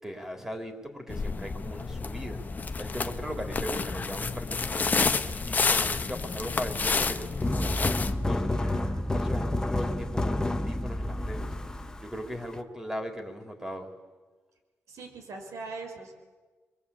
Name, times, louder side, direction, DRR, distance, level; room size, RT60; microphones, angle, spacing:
voice 1, 0.0-2.4 2.8-5.0 5.4-8.5 9.1-11.5 12.0-13.9, equal, 10° right, 5 dB, 3.7 m, -38 dB
sound 1, 1.1-8.1, left 4 dB, 35° left, 1.2 m, -29 dB
sound 2, 7.4-12.6, left 1 dB, 15° left, 1.3 m, -29 dB
voice 2, 8.5-9.2 14.9-16.1, right 3 dB, 80° right, 4 dB, 5.1 m, -42 dB
29.0 x 23.0 x 8.5 m, 1.4 s
cardioid pair, 110°, 5 cm